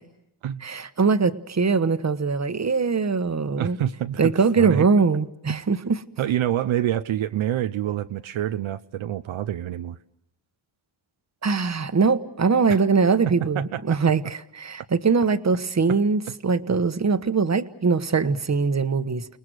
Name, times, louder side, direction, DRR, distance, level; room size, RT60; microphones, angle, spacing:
voice 1, 0.6-3.8 4.2-6.0 11.4-19.3, right 4 dB, 35° right, 12 dB, 1.3 m, -22 dB
voice 2, 3.6-4.8 6.2-10.0 12.7-12.8 13.5-14.0 15.9-16.0, right 12 dB, 75° right, 9 dB, 0.8 m, -27 dB
30.0 x 19.5 x 6.4 m, 0.81 s
cardioid pair, 65°, 48 cm